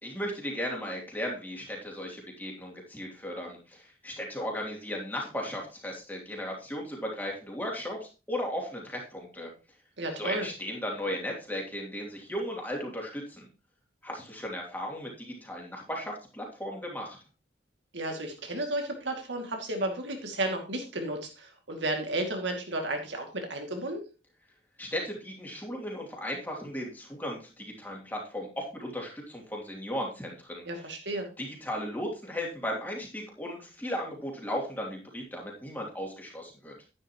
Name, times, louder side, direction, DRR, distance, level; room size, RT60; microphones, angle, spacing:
voice 1, 0.0-9.5 10.1-13.5 14.0-17.2 24.8-30.6 31.4-36.7, equal, 10° left, -1 dB, 2.8 m, -36 dB
voice 2, 10.0-10.5 17.9-24.0 30.7-31.3, right 1 dB, 90° right, 3 dB, 2.4 m, -33 dB
10.5 x 9.9 x 3.0 m, 0.32 s
head